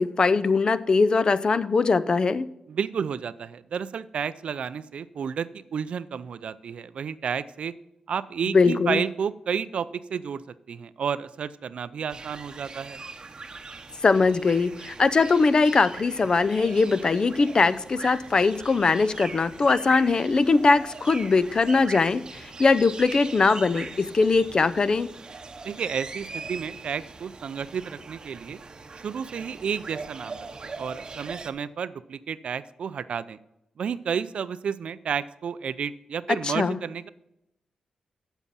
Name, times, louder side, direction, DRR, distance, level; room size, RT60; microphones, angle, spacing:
voice 1, 0.0-2.5 8.5-9.0 14.0-25.1 36.4-36.8, left 4 dB, 45° left, 15 dB, 0.6 m, -21 dB
voice 2, 2.7-7.7 8.1-10.4 10.7-13.0 25.6-28.6 28.9-30.5 30.8-33.4 33.8-37.1, right 7 dB, 70° right, 16 dB, 0.4 m, -31 dB
sound 1, 12.1-31.5, right 4 dB, 40° right, 0.8 m, -41 dB
8.1 x 7.2 x 5.5 m, 0.85 s
cardioid pair, 70°, 2 cm